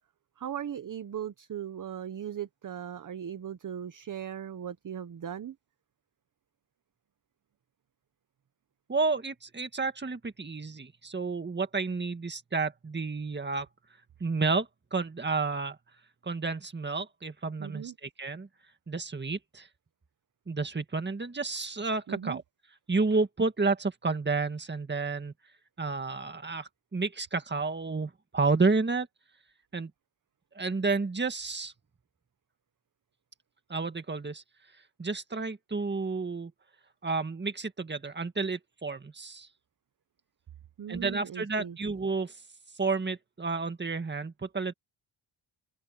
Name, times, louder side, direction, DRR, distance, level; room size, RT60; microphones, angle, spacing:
voice 1, 0.4-5.6 17.6-17.9 22.1-22.4 40.8-41.8, right 9 dB, 40° right, 0.9 m, -38 dB
voice 2, 8.9-13.7 14.2-15.8 16.2-18.5 18.9-19.7 20.5-22.4 22.9-25.3 25.8-29.1 29.7-29.9 30.6-31.7 33.7-34.4 35.0-36.5 37.0-39.5 40.9-42.4 42.8-44.7, right 4 dB, 20° right, 1.8 m, -31 dB
open air
wide cardioid pair, 135°, 50 cm